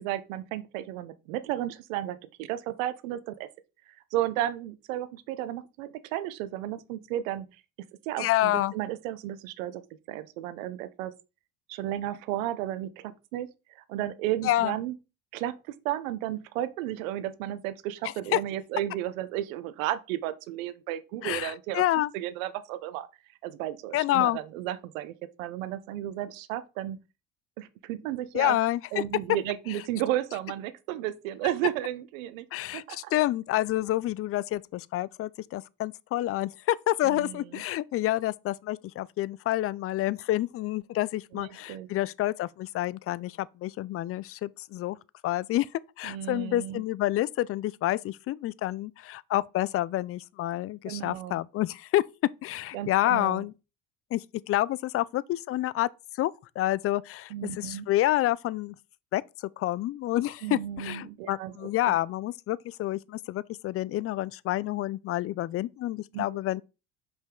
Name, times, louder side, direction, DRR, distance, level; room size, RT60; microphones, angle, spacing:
voice 1, 0.0-3.5 4.1-7.5 8.1-11.1 11.7-13.5 13.9-14.9 15.3-15.6 15.8-21.8 22.1-23.1 23.4-27.0 27.6-28.6 28.9-32.4 32.7-33.1 37.0-37.6 41.3-41.9 46.0-46.8 50.9-51.4 52.7-53.4 57.3-57.9 60.4-61.7 66.1-66.4, right 13 dB, 80° right, 0.8 m, -33 dB
voice 2, 8.2-8.7 14.4-14.7 18.3-18.4 21.2-22.1 23.9-24.4 28.3-29.0 32.5-45.0 45.2-45.7 46.0-52.0 52.4-53.5 54.1-55.9 56.2-58.7 59.1-59.2 59.6-66.6, left 15 dB, 35° left, 0.4 m, -28 dB
5.4 x 5.3 x 3.7 m
supercardioid pair, 85°, 39 cm